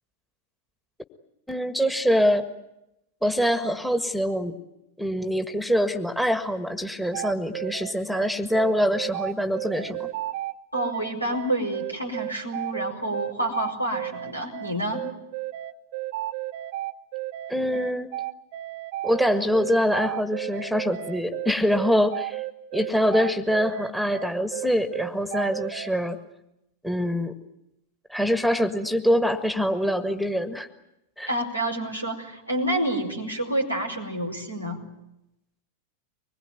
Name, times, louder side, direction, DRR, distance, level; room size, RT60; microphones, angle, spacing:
voice 1, 1.5-2.5 3.2-4.6 5.0-10.1 17.5-18.1 19.0-22.4 22.7-26.2 26.8-27.3 28.1-30.7 31.2-31.3, equal, ahead, 10 dB, 1.6 m, -24 dB
sound 1, 7.1-26.0, right 16 dB, 50° right, 1.0 m, -33 dB
voice 2, 10.7-15.1 31.3-34.8, right 1 dB, 90° left, 1 dB, 5.0 m, -28 dB
24.5 x 21.0 x 9.3 m, 0.87 s
figure-of-eight pair, 90°, 0 cm